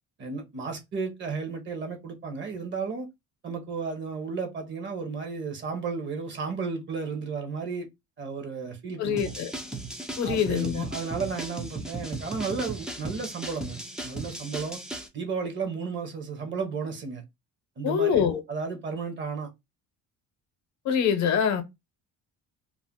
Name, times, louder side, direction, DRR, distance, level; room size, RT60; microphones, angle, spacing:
voice 1, 0.2-3.1 3.4-7.9 8.2-9.2 10.2-14.8 15.1-17.2 17.8-19.5, right 5 dB, 35° right, 0.8 m, -33 dB
voice 2, 9.0-9.5 10.2-10.8 17.8-18.4 20.8-21.6, left 7 dB, 65° left, 0.7 m, -24 dB
sound 1, 9.2-15.1, right 2 dB, ahead, 0.3 m, -37 dB
2.5 x 2.1 x 3.4 m
cardioid pair, 135°, 31 cm